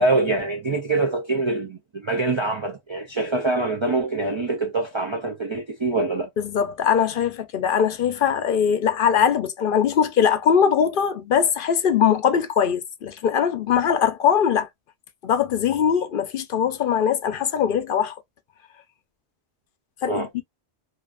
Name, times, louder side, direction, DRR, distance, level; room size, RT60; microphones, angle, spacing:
voice 1, 0.0-6.3 20.1-20.3, right 2 dB, 50° right, 0.3 m, -24 dB
voice 2, 6.4-14.7 15.2-18.2 20.0-20.4, left 8 dB, 65° left, 0.7 m, -21 dB
2.5 x 2.5 x 2.3 m
omnidirectional pair, 1.0 m